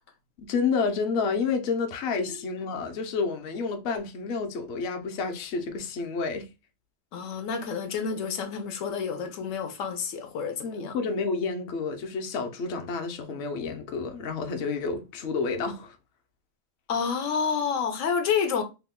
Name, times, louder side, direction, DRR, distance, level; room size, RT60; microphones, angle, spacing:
voice 1, 0.4-6.5 10.6-16.0, left 5 dB, 60° left, 0.8 m, -29 dB
voice 2, 7.1-11.0 16.9-18.6, left 6 dB, 85° left, 1.0 m, -29 dB
3.0 x 2.2 x 3.5 m
omnidirectional pair, 1.3 m